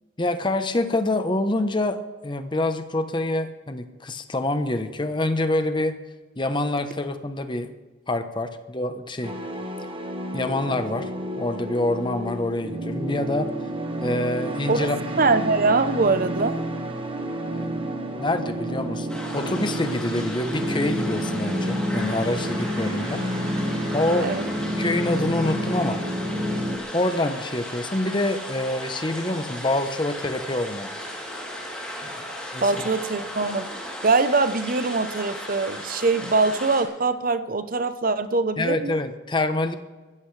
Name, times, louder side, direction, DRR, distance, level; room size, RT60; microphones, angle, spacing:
voice 1, 0.2-6.0 6.4-7.7 8.1-9.3 10.3-11.1 11.4-13.5 14.0-15.0 17.5-17.9 18.2-23.2 23.9-24.3 24.8-26.0 26.9-30.9 32.0-32.3 32.5-32.7 38.6-39.8, left 2 dB, 25° left, 9 dB, 0.9 m, -26 dB
sound 1, 9.2-26.8, equal, 30° right, 1.4 m, -29 dB
voice 2, 15.2-16.6 24.2-24.4 32.6-33.7 34.0-39.0, right 3 dB, 45° right, 11 dB, 0.8 m, -22 dB
sound 2, 19.1-36.8, equal, 5° left, 3.1 m, -36 dB
22.0 x 14.5 x 3.3 m, 1.3 s
head